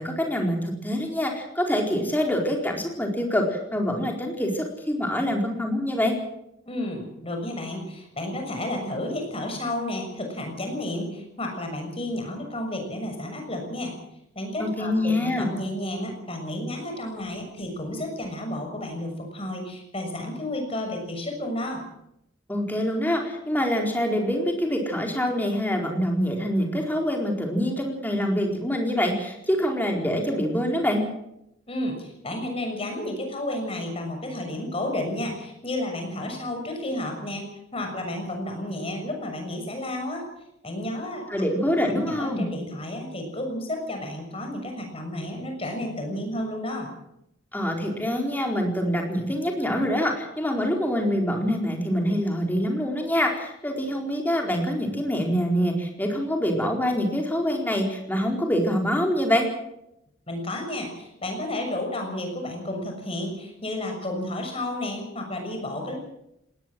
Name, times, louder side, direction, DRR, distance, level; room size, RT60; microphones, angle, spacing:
voice 1, 0.0-6.2 14.6-15.5 22.5-31.0 41.3-42.4 47.5-59.5, equal, 10° left, 1 dB, 4.4 m, -25 dB
voice 2, 6.6-14.0 14.3-21.8 31.7-40.3 40.6-41.3 42.0-46.9 60.3-66.0, left 1 dB, 30° left, 4 dB, 6.5 m, -32 dB
19.5 x 19.0 x 7.7 m, 0.82 s
head